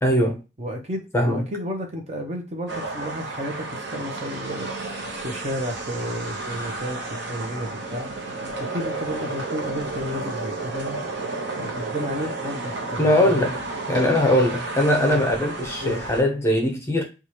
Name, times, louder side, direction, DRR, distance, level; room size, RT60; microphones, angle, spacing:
voice 1, 0.0-0.4 1.1-1.4 13.0-13.6 13.9-17.0, left 1 dB, 15° left, 0.7 m, -20 dB
voice 2, 0.6-4.7 5.2-7.0 7.3-8.1 8.6-11.0 11.6-13.4 15.0-15.2 15.8-16.0, equal, 35° right, 0.8 m, -32 dB
sound 1, 2.7-16.2, right 2 dB, 60° right, 0.9 m, -32 dB
4.6 x 2.4 x 2.9 m
head